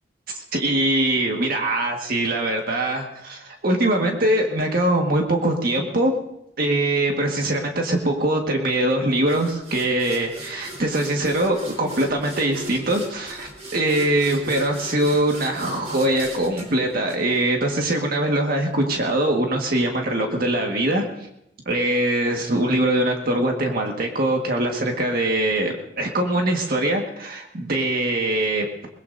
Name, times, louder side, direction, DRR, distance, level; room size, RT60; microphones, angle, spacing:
voice 1, 0.3-6.1 6.6-21.0 21.6-28.7, right 1 dB, 60° right, 1 dB, 1.7 m, -22 dB
sound 1, 9.3-17.8, right 1 dB, 40° right, 4.0 m, -39 dB
22.5 x 20.5 x 2.7 m, 0.79 s
head